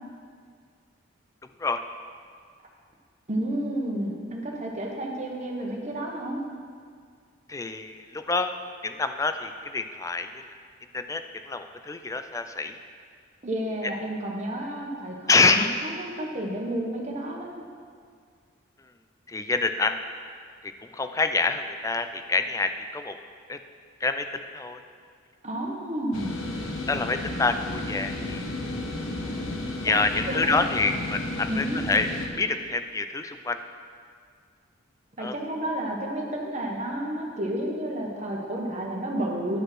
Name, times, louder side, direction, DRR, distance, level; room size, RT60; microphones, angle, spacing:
voice 1, 3.3-6.4 13.4-17.6 25.4-26.3 29.8-29.9 30.2-30.7 31.5-31.8 35.2-39.6, right 1 dB, 35° right, -1 dB, 1.2 m, -31 dB
voice 2, 7.5-8.5 8.8-10.4 10.9-12.8 15.3-15.7 19.3-20.0 20.6-23.2 23.5-23.6 24.0-24.3 24.5-24.8 26.9-28.5 29.8-32.1 32.3-33.6 35.2-35.3, left 3 dB, 15° left, 8 dB, 0.3 m, -26 dB
sound 1, 26.1-32.3, left 2 dB, 90° left, 1.0 m, -33 dB
10.5 x 5.2 x 6.2 m, 2.1 s
head